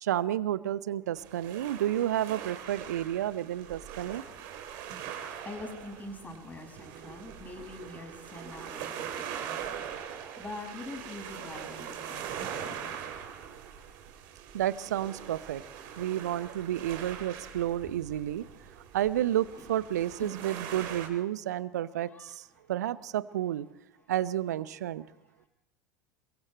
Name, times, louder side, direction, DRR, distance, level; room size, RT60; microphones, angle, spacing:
voice 1, 0.0-4.2 14.5-15.6 16.0-18.4 18.9-22.4 22.7-23.7 24.1-25.0, right 12 dB, 65° right, 18 dB, 0.8 m, -31 dB
sound 1, 1.1-21.1, right 9 dB, 50° right, 4.1 m, -42 dB
voice 2, 5.3-13.0 19.6-19.7 20.2-20.4 20.9-21.1 22.1-22.3, left 2 dB, 15° left, 2 dB, 6.7 m, -45 dB
28.5 x 23.0 x 4.3 m, 0.79 s
figure-of-eight pair, 75°, 10 cm